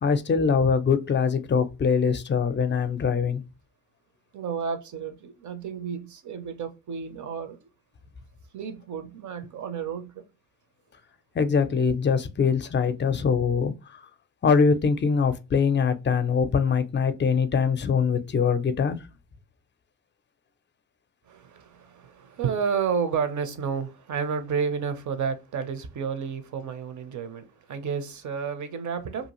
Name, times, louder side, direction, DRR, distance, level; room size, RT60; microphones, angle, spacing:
voice 1, 0.0-3.4 11.3-13.7 14.4-19.0, left 6 dB, 25° left, 0.5 m, -23 dB
voice 2, 4.3-7.7 8.5-10.3 21.3-29.3, right 6 dB, 45° right, 0.7 m, -31 dB
2.7 x 2.4 x 3.0 m
supercardioid pair, 55°, 42 cm